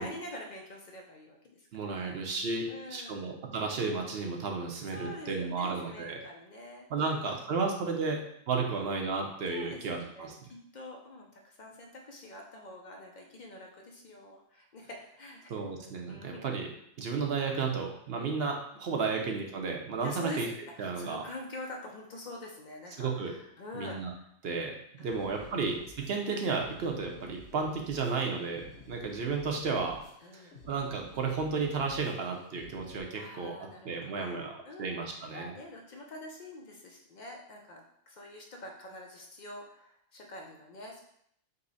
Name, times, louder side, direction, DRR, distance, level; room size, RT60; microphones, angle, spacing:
voice 1, 0.0-1.7 1.9-2.2 2.7-3.3 4.9-7.4 7.9-8.1 8.6-8.9 9.5-15.5 16.1-16.5 18.2-18.4 19.1-19.2 20.0-24.0 25.0-25.8 30.2-30.6 33.1-35.0 35.3-41.0, left 1 dB, 80° left, 0 dB, 0.4 m, -46 dB
voice 2, 1.7-6.2 6.9-10.4 15.5-16.7 17.0-20.5 20.8-21.2 23.0-23.3 23.7-24.1 24.4-24.7 25.0-30.0 30.3-30.4 30.7-33.6 33.8-34.5 34.8-35.5, right 4 dB, 55° right, 1 dB, 0.7 m, -33 dB
sound 1, 25.0-33.0, left 3 dB, 55° left, 1.4 m, -53 dB
5.4 x 2.1 x 4.0 m, 0.71 s
omnidirectional pair, 1.4 m